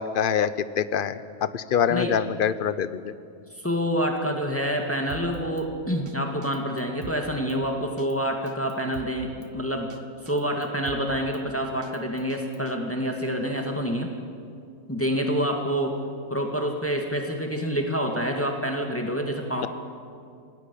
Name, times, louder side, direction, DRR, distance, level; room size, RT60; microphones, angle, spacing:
voice 1, 0.0-3.1, left 8 dB, 45° left, 15 dB, 0.8 m, -25 dB
voice 2, 3.6-9.9 10.2-14.1 14.9-15.9 16.3-19.7, equal, 10° left, 2 dB, 2.0 m, -27 dB
Drum kit, 5.1-5.7 6.1-6.2 6.4-7.6 8.0-8.1 8.5-9.5 9.9-10.0 10.3-11.4 11.8-12.7, right 7 dB, 65° right, 1.4 m, -44 dB
26.5 x 19.0 x 8.5 m, 2.4 s
omnidirectional pair, 1.4 m